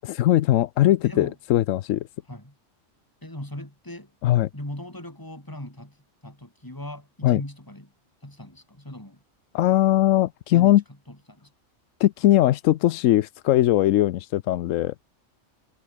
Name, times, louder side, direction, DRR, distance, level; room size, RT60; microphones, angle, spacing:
voice 1, 0.0-2.1 4.2-4.5 7.2-7.4 9.5-10.8 12.0-14.9, left 14 dB, 85° left, 1.0 m, -20 dB
voice 2, 1.0-1.4 2.3-2.6 3.2-4.1 4.5-6.0 6.2-7.9 8.2-9.2 10.5-10.7 11.1-11.5, left 1 dB, 15° left, 4.6 m, -39 dB
omnidirectional pair, 1.3 m